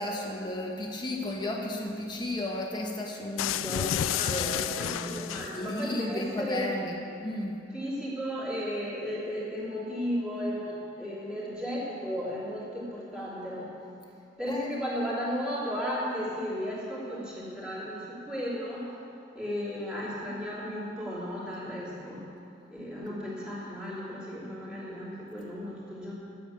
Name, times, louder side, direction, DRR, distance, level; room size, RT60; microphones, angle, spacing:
voice 1, 0.0-3.7 4.2-7.6 14.5-14.7, left 1 dB, 20° left, 0 dB, 1.5 m, -34 dB
sound 1, 3.4-5.8, left 11 dB, 85° left, 0.3 m, -31 dB
voice 2, 3.6-6.7 7.7-13.7 14.4-18.8 19.3-22.3 22.7-26.1, equal, 5° right, -8 dB, 3.5 m, -34 dB
11.5 x 9.1 x 8.2 m, 2.6 s
head